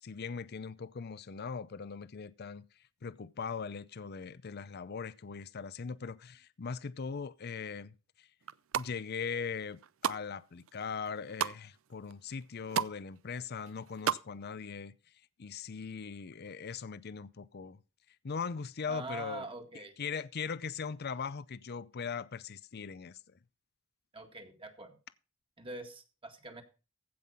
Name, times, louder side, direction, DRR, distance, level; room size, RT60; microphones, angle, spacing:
voice 1, 0.0-8.3 8.7-14.9 15.4-17.8 18.1-19.5 19.7-23.4, left 5 dB, 55° left, 0.5 m, -40 dB
sound 1, 8.4-8.9 9.5-10.2 10.6-11.6 12.1-12.2 12.4-13.0 13.3-14.2 14.5-14.6, right 8 dB, 85° right, 0.5 m, -33 dB
voice 2, 18.9-19.9 24.1-25.0 25.6-26.6, right 2 dB, 25° right, 1.9 m, -44 dB
15.5 x 5.6 x 5.6 m
head